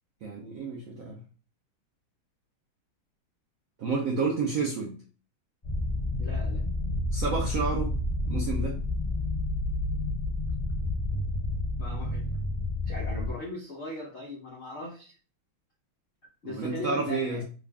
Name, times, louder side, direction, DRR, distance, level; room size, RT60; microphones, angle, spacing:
voice 1, 0.2-1.2 3.8-5.0 7.1-7.9 8.3-8.8 16.4-17.4, right 4 dB, 85° right, 0 dB, 0.7 m, -30 dB
sound 1, 5.6-13.3, left 2 dB, 25° left, 0.6 m, -30 dB
voice 2, 6.2-6.6 11.8-12.3 12.9-15.1 16.4-17.4, left 2 dB, 85° left, -2 dB, 0.6 m, -39 dB
3.7 x 2.3 x 3.3 m, 0.37 s
omnidirectional pair, 2.2 m